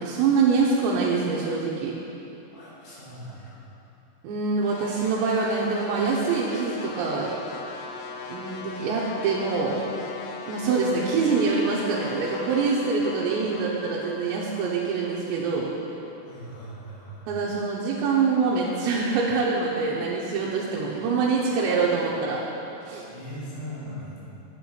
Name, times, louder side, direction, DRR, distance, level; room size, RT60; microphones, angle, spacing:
voice 1, 0.0-1.9 4.2-7.3 8.3-9.8 10.5-15.7 17.3-22.4 22.8-23.0, right 4 dB, 80° right, -6 dB, 2.9 m, -25 dB
voice 2, 2.5-3.6 16.2-17.3 20.8-20.9 23.1-24.3, equal, 70° left, -9 dB, 4.4 m, -39 dB
sound 1, 4.6-16.9, left 3 dB, 85° left, 3.0 m, -39 dB
8.7 x 8.4 x 4.4 m, 2.9 s
omnidirectional pair, 5.4 m